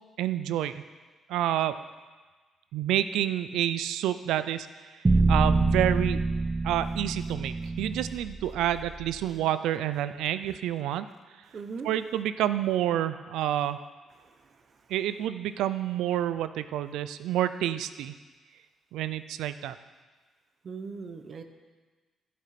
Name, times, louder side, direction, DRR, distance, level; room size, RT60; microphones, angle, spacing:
voice 1, 0.2-0.8 1.3-1.8 2.7-4.7 5.3-6.2 6.6-11.1 11.8-13.8 14.9-18.2 18.9-19.8, right 12 dB, 90° right, 12 dB, 0.5 m, -28 dB
sound 1, 5.0-9.3, right 3 dB, 20° right, 0.7 m, -26 dB
voice 2, 11.5-11.9 20.6-21.4, right 5 dB, 50° right, 7 dB, 1.1 m, -38 dB
12.5 x 7.6 x 5.9 m, 1.3 s
cardioid pair, 90°, 0 cm